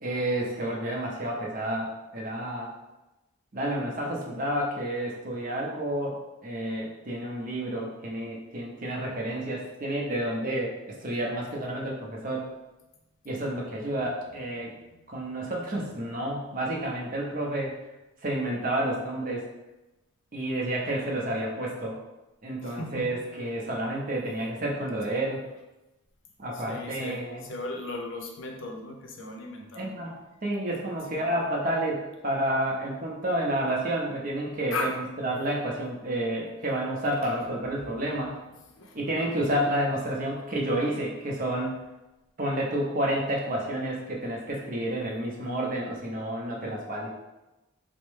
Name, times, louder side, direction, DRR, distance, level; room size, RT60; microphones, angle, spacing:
voice 1, 0.0-2.7 3.5-12.5 13.2-14.7 15.1-17.8 18.2-19.5 20.3-22.0 22.4-25.4 26.4-27.5 29.7-38.4 38.9-41.8 42.4-47.1, right 1 dB, 40° right, -2 dB, 0.6 m, -30 dB
voice 2, 22.6-23.1 25.1-25.2 26.5-30.0 31.1-31.2 34.7-35.0 37.2-37.3 38.8-39.0, left 2 dB, 60° left, 2 dB, 0.5 m, -36 dB
4.4 x 2.1 x 3.1 m, 1.0 s
head